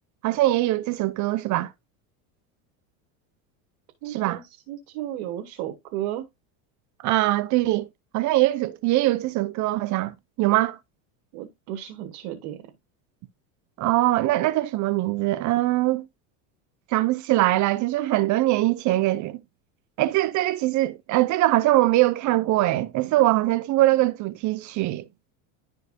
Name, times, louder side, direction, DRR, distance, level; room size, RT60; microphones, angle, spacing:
voice 1, 0.2-1.7 4.1-4.4 7.0-7.9 8.1-10.1 10.4-10.8 13.8-16.0 16.9-19.4 20.0-25.0, right 17 dB, 45° right, 0.6 m, -22 dB
voice 2, 4.0-6.3 11.3-12.7, right 12 dB, 70° right, 1.5 m, -34 dB
11.0 x 4.5 x 2.6 m
supercardioid pair, 125°, 42 cm